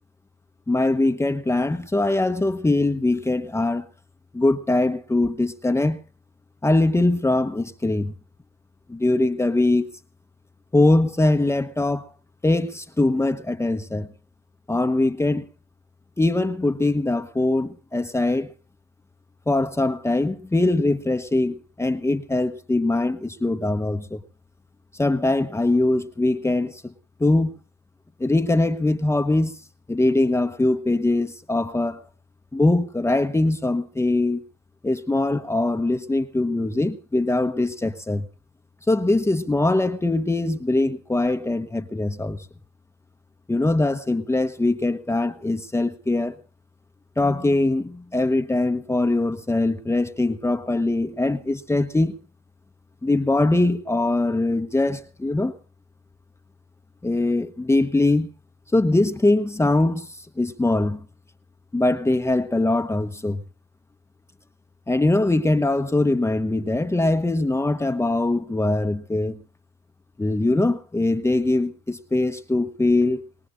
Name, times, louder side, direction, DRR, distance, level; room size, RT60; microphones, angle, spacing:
voice 1, 0.7-3.9 4.3-6.0 6.6-8.1 8.9-9.9 10.7-12.1 12.4-14.1 14.7-15.5 16.2-18.5 19.5-24.2 24.9-26.9 27.2-27.6 28.2-29.5 29.9-32.0 32.5-34.4 34.8-38.3 38.9-42.5 43.5-46.4 47.2-52.1 53.0-55.5 57.0-58.3 58.7-61.0 61.7-63.4 64.9-69.4 70.2-73.2, left 2 dB, 10° left, 1.0 m, -22 dB
23.0 x 19.5 x 2.5 m
hypercardioid pair, 60°, 21 cm